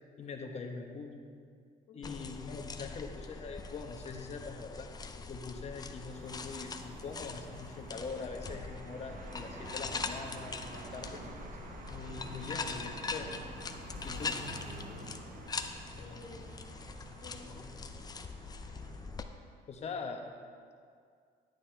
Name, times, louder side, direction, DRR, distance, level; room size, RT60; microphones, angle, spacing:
voice 1, 0.2-1.1 1.9-4.9 5.3-11.2 11.9-13.4 14.0-14.3 19.7-20.3, left 4 dB, 40° left, 3 dB, 1.1 m, -43 dB
voice 2, 1.9-2.5 14.1-15.2 16.0-16.6 17.1-17.6, left 2 dB, 75° left, -1 dB, 1.8 m, -53 dB
sound 1, 2.0-19.3, left 4 dB, 25° left, 0.5 m, -42 dB
sound 2, 6.0-19.3, right 3 dB, 55° right, 1.0 m, -49 dB
10.5 x 9.4 x 3.4 m, 2.2 s
cardioid pair, 110°, 17 cm